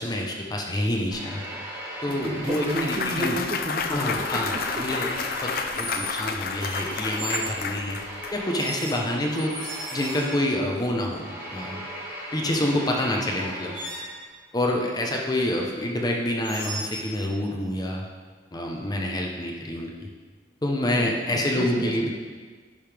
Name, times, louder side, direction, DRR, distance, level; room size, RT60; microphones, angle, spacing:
voice 1, 0.0-1.4 2.0-3.4 3.9-5.5 5.8-8.0 8.3-9.6 9.9-11.8 12.3-13.8 14.5-18.0 18.5-20.1 20.6-22.1, left 1 dB, 20° left, 0 dB, 0.8 m, -27 dB
sound 1, 1.1-3.5 3.9-14.3, equal, 15° right, 2.1 m, -38 dB
sound 2, 1.5-1.7 3.5-3.8 5.7-6.2 6.6-7.6 8.6-10.6 12.8-12.9 13.3-14.2 16.4-17.1, right 1 dB, 70° right, 2.0 m, -37 dB
Clapping / Cheering / Applause, 2.1-8.3, left 5 dB, 55° left, 0.6 m, -31 dB
voice 2, 2.2-4.8 21.0-22.1, right 1 dB, 30° right, 4 dB, 0.5 m, -32 dB
10.5 x 5.4 x 3.4 m, 1.5 s
head